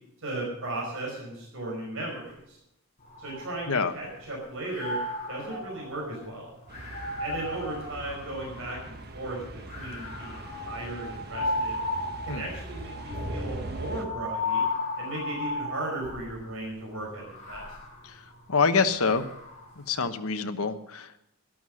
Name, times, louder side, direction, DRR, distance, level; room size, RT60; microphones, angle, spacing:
voice 1, 0.2-2.6 3.2-5.0 5.3-6.5 7.2-9.4 9.8-11.8 12.2-14.6 15.0-17.6, right 2 dB, 60° right, -2 dB, 5.2 m, -36 dB
sound 1, 3.0-4.2 4.6-9.0 9.7-16.4 17.1-19.7, left 2 dB, 30° left, 5.9 m, -35 dB
sound 2, 6.7-14.0, right 1 dB, 45° right, 1.4 m, -40 dB
voice 2, 18.5-19.2 19.9-21.2, left 5 dB, 70° left, 8 dB, 1.1 m, -26 dB
13.5 x 11.5 x 6.4 m, 0.79 s
head